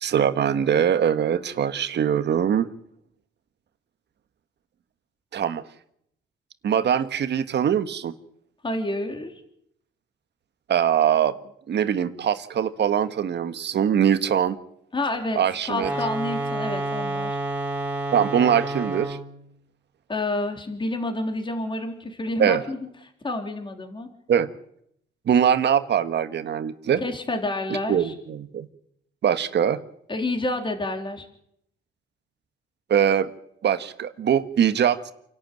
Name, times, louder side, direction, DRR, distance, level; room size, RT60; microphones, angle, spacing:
voice 1, 0.0-2.7 5.3-5.6 6.6-8.1 10.7-11.3 11.7-14.6 15.4-15.9 18.1-19.2 22.4-22.6 24.3-24.5 25.3-27.0 27.9-28.7 29.2-29.8 32.9-33.3 33.6-35.1, right 8 dB, 60° right, 10 dB, 1.5 m, -22 dB
voice 2, 8.6-9.4 14.9-15.4 15.7-17.4 20.1-22.9 23.2-24.1 27.0-28.1 30.1-31.3, left 2 dB, 25° left, 4 dB, 3.6 m, -29 dB
sound 1, 15.7-19.4, right 2 dB, 10° right, 5.7 m, -29 dB
28.5 x 12.0 x 9.2 m, 0.74 s
cardioid pair, 90°, 20 cm